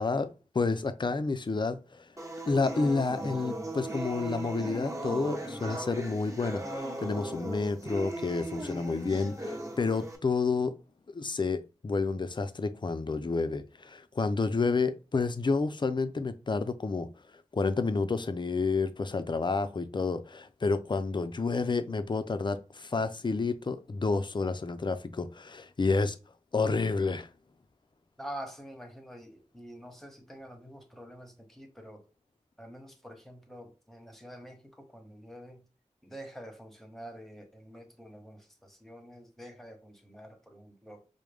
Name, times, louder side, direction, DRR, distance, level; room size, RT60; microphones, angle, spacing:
voice 1, 0.0-2.0 2.5-10.7 11.1-17.1 17.5-26.2 26.5-27.3, left 4 dB, 40° left, 0.4 m, -30 dB
sound 1, 2.2-10.2, right 1 dB, 25° right, 1.0 m, -38 dB
voice 2, 28.2-32.1 32.6-35.6 36.0-41.1, equal, ahead, 1.0 m, -47 dB
4.8 x 2.1 x 3.4 m
wide cardioid pair, 50°, 12 cm